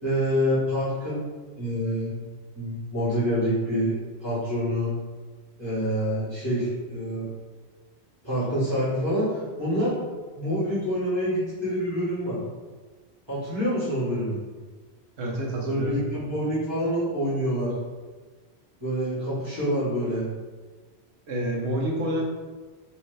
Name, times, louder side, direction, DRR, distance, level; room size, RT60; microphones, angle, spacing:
voice 1, 0.0-1.2 1.6-2.1 2.5-4.9 5.6-7.3 8.2-9.9 10.3-12.4 13.3-14.4 15.6-17.7 18.8-20.3, equal, 25° right, -11 dB, 1.6 m, -26 dB
voice 2, 15.2-16.0 21.3-22.2, right 1 dB, 85° right, -1 dB, 1.1 m, -28 dB
4.2 x 2.8 x 3.2 m, 1.4 s
omnidirectional pair, 1.1 m